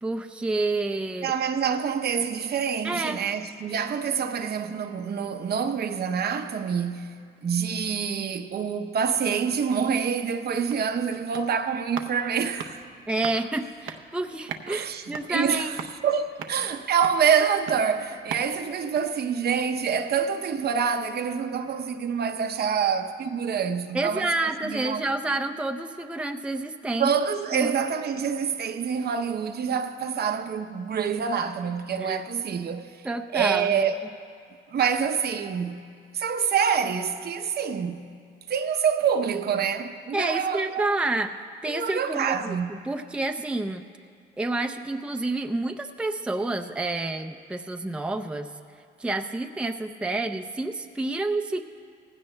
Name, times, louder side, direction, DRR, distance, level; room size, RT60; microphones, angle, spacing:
voice 1, 0.0-1.3 2.8-3.2 13.1-15.7 23.9-27.1 27.5-27.8 32.0-32.2 33.0-33.8 40.1-41.3 41.6-43.9 44.4-48.5 49.0-51.6, right 2 dB, 5° right, 0.5 m, -29 dB
voice 2, 1.2-12.8 14.7-25.0 27.0-32.9 33.3-34.0 34.7-35.8 36.1-38.1 38.5-41.0 41.6-42.7, right 7 dB, 55° right, 0.7 m, -26 dB
sound 1, 10.6-19.9 20.2-20.3, right 6 dB, 85° right, 0.7 m, -42 dB
18.5 x 16.0 x 2.2 m
cardioid pair, 90°, 20 cm